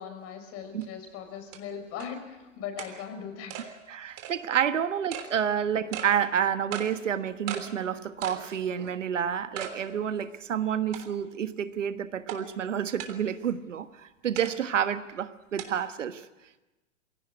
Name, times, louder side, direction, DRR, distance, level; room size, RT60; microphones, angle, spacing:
voice 1, 0.0-3.6, left 7 dB, 40° left, 6 dB, 5.9 m, -39 dB
sound 1, 0.8-0.9 1.5-1.6 2.0-2.1 2.8-2.9 3.5-3.7 4.2-4.3 5.1-5.3 5.9-6.1 6.7-6.9 7.5-7.7 8.2-8.5 8.9-9.0 9.6-9.8 10.2-10.3 10.9-11.3 12.3-12.4 13.0-13.2 14.4-14.5 15.6-15.7, right 10 dB, 45° right, 3.5 m, -37 dB
voice 2, 3.9-16.3, right 8 dB, 80° right, 11 dB, 1.4 m, -29 dB
22.5 x 17.5 x 9.6 m, 1.1 s
hypercardioid pair, 105°, 37 cm